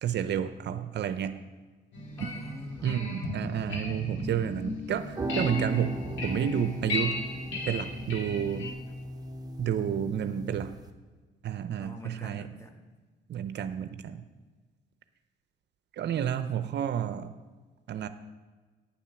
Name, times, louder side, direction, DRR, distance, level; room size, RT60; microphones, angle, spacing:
voice 1, 0.0-1.3 2.8-7.2 7.7-8.7 9.6-10.7 11.4-12.5 13.3-14.2 15.9-17.3 17.9-18.1, right 9 dB, 60° right, 11 dB, 0.6 m, -30 dB
sound 1, 1.9-8.7, left 2 dB, 70° left, 2.0 m, -36 dB
voice 2, 2.2-3.0 11.8-12.9 16.1-16.4, left 2 dB, 15° left, 4 dB, 1.3 m, -45 dB
sound 2, 4.9-10.9, right 1 dB, 20° right, 0.9 m, -37 dB
9.5 x 7.2 x 5.8 m, 1.3 s
cardioid pair, 90°, 20 cm